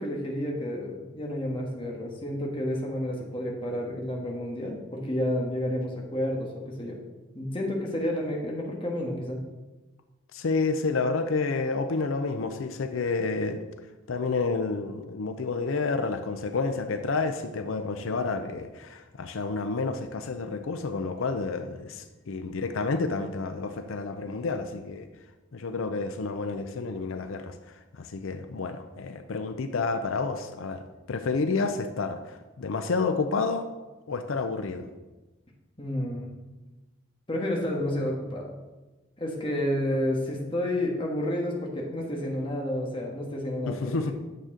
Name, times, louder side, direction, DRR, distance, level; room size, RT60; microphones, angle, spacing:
voice 1, 0.0-7.0 7.3-9.4 35.8-36.3 37.3-38.5 39.2-44.1, left 1 dB, 25° left, -1 dB, 1.3 m, -30 dB
voice 2, 10.3-13.6 14.1-25.1 25.5-27.5 27.9-30.8 31.1-33.7 34.1-34.9 43.7-44.1, left 4 dB, 85° left, 8 dB, 0.6 m, -29 dB
9.0 x 6.6 x 3.7 m, 1.2 s
head